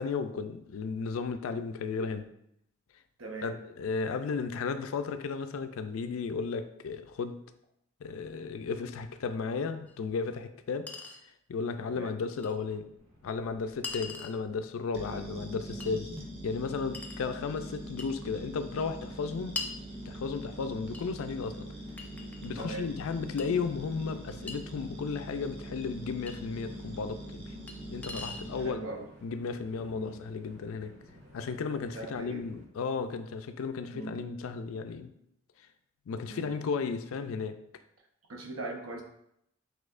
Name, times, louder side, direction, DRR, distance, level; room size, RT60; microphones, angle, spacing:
voice 1, 0.0-2.3 3.4-7.4 8.0-10.9 11.5-12.9 13.2-16.1 16.4-19.6 20.1-21.7 22.4-27.5 27.9-28.8 29.2-30.9 31.3-35.1 36.1-37.6, left 5 dB, 85° left, 9 dB, 0.4 m, -34 dB
voice 2, 3.2-3.5 11.9-12.2 15.1-15.3 22.6-22.8 28.5-29.0 29.9-30.2 31.9-32.5 33.9-34.2 36.3-36.5 38.3-39.0, right 3 dB, 90° right, 2 dB, 0.8 m, -40 dB
Chink clink, 9.9-10.0 10.9-11.2 12.4-12.5 13.8-14.4 15.8-15.9 16.9-17.2 18.0-18.2 19.6-19.8 20.9-21.1 22.0-22.7 23.4-23.5 24.5-24.6 26.3-26.4 27.7-27.8 28.0-28.5, left 3 dB, 10° left, 0.3 m, -40 dB
Train, 12.7-32.6, equal, 70° right, 1.4 m, -56 dB
sound 1, 14.9-28.7, right 1 dB, 30° right, 0.7 m, -43 dB
6.1 x 2.7 x 2.5 m, 0.76 s
head